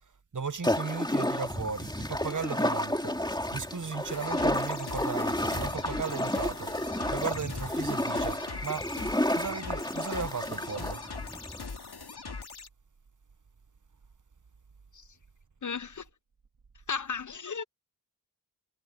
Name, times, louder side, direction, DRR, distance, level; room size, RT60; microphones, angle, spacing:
voice 1, 0.3-3.1 3.5-6.7 7.1-8.9 9.3-11.0, right 5 dB, 50° right, 1.0 m, -36 dB
sound 1, 0.6-11.6, left 1 dB, 10° left, 2.6 m, -31 dB
sound 2, 4.1-12.7, left 4 dB, 75° left, 2.2 m, -41 dB
voice 2, 15.6-16.0 16.9-17.6, left 6 dB, 50° left, 0.6 m, -34 dB
wide cardioid pair, 65°, 40 cm